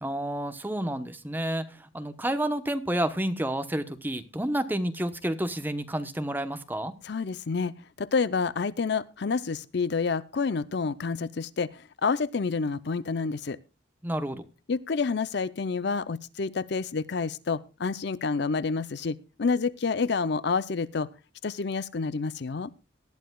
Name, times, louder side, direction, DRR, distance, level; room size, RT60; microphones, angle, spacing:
voice 1, 0.0-6.9 14.0-14.5, right 1 dB, 10° right, 10 dB, 0.9 m, -30 dB
voice 2, 7.0-13.6 14.7-21.1 21.4-22.7, left 4 dB, 55° left, 17 dB, 0.5 m, -29 dB
19.0 x 11.5 x 2.3 m, 0.30 s
head